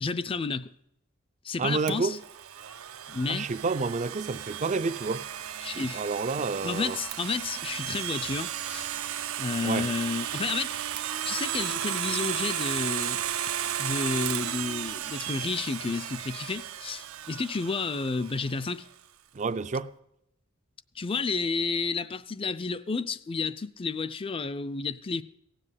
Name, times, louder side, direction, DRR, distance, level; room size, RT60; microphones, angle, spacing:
voice 1, 0.0-0.7 1.4-2.2 3.1-3.5 5.6-6.0 6.4-8.9 9.4-10.8 11.2-13.2 13.8-18.8 21.0-25.2, left 4 dB, 25° left, 0.4 m, -31 dB
voice 2, 1.6-2.2 3.3-5.3 5.7-7.0 9.6-9.9 19.3-19.9, right 4 dB, 35° right, 0.4 m, -29 dB
Domestic sounds home sounds, 1.9-18.6, right 10 dB, 85° right, 0.6 m, -34 dB
17.0 x 7.7 x 8.0 m
head